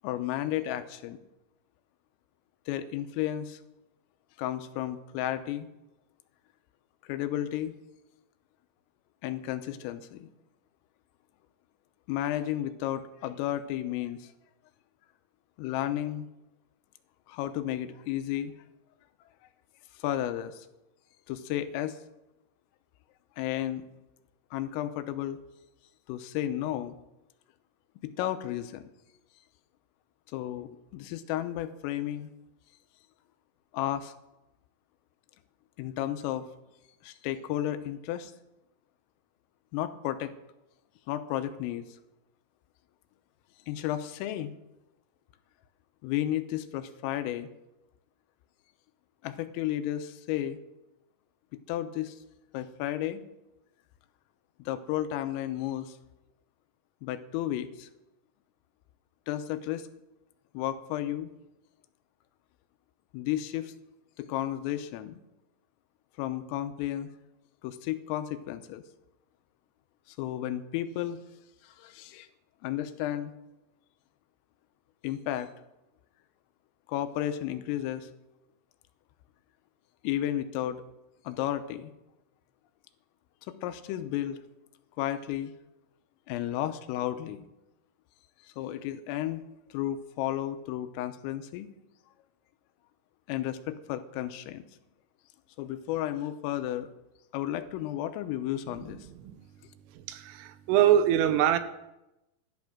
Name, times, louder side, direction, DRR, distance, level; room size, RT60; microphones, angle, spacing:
voice 1, 0.0-1.2 2.7-3.6 4.4-5.7 7.1-7.8 9.2-10.3 12.1-14.3 15.6-16.3 17.3-18.5 20.0-20.7 21.3-22.0 23.4-23.9 24.5-25.4 26.1-27.0 28.0-28.8 30.3-32.3 33.7-34.1 35.8-36.5 37.0-38.3 39.7-40.3 41.1-41.9 43.7-44.6 46.0-47.5 49.2-50.6 51.7-52.2 52.5-53.2 54.6-56.0 57.0-57.9 59.3-59.9 60.6-61.3 63.1-63.7 64.2-65.2 66.2-67.1 67.6-68.8 70.1-71.2 71.6-72.3 72.6-73.3 75.0-75.5 76.9-78.1 80.0-80.8 81.3-81.9 83.5-84.4 85.0-85.5 86.3-87.5 88.6-89.4 89.7-91.7 93.3-94.6 95.6-96.9 97.3-99.0, left 12 dB, 85° left, 3.5 m, -33 dB
voice 2, 100.1-101.6, right 10 dB, 85° right, 3.3 m, -23 dB
14.0 x 11.5 x 6.0 m
omnidirectional pair, 5.9 m